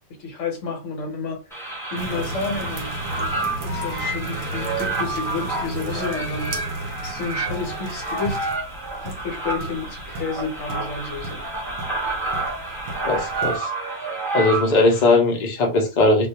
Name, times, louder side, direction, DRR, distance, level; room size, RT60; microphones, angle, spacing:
voice 1, 0.2-1.4 1.9-2.9 3.6-6.7 7.0-8.5 9.0-11.4, left 4 dB, 70° left, 1.1 m, -30 dB
sound 1, 1.5-15.0, right 2 dB, 5° left, 0.5 m, -29 dB
sound 2, 2.0-13.6, right 2 dB, 65° right, 0.8 m, -34 dB
voice 2, 13.0-13.7 14.3-16.3, left 2 dB, 50° left, 0.5 m, -19 dB
2.3 x 2.2 x 2.7 m
omnidirectional pair, 1.4 m